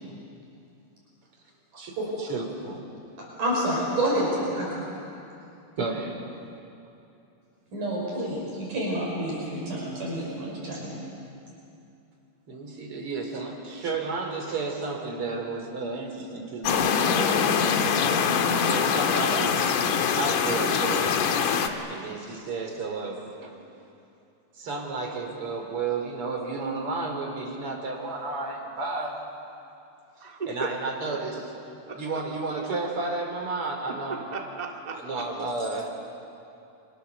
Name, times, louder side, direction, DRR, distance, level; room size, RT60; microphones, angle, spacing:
voice 1, 1.8-2.8 5.8-6.3 12.5-17.7 18.1-19.7 20.2-21.3 21.9-23.5 24.5-29.2 30.5-31.5 31.9-34.2 34.9-35.9, right 3 dB, 40° right, 2 dB, 3.8 m, -32 dB
voice 2, 3.2-5.1 7.7-11.0, right 1 dB, 60° right, -4 dB, 6.9 m, -29 dB
sound 1, 16.6-21.7, left 6 dB, 65° left, 2.6 m, -23 dB
voice 3, 30.2-30.7 31.9-32.0 33.9-35.0, right 4 dB, 20° right, 1 dB, 1.1 m, -35 dB
30.0 x 24.0 x 7.0 m, 2.6 s
omnidirectional pair, 4.2 m